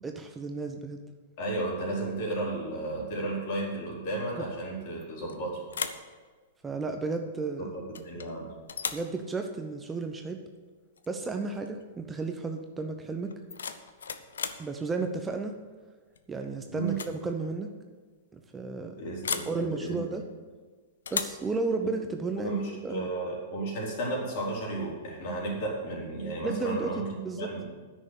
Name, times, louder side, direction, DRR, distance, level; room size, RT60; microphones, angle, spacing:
voice 1, 0.0-1.0 6.6-7.7 8.9-10.4 11.1-13.3 14.6-15.6 16.3-17.7 18.3-19.0 19.5-20.3 21.1-23.1 26.4-27.5, right 3 dB, 15° right, 5 dB, 0.8 m, -33 dB
voice 2, 1.4-5.6 7.6-8.5 16.7-17.0 19.0-20.1 21.8-21.9 22.4-27.7, right 2 dB, 50° left, -3 dB, 4.0 m, -33 dB
sound 1, 5.0-5.4 5.7-6.1 7.9-8.3 8.7-9.1 11.0-11.1 11.5-11.8 13.3-14.7 16.2-16.5 16.8-17.2 17.4-17.5 19.2-19.6 21.1-21.5, left 6 dB, 75° left, 0.7 m, -35 dB
10.0 x 6.4 x 8.1 m, 1.4 s
figure-of-eight pair, 105°, 0 cm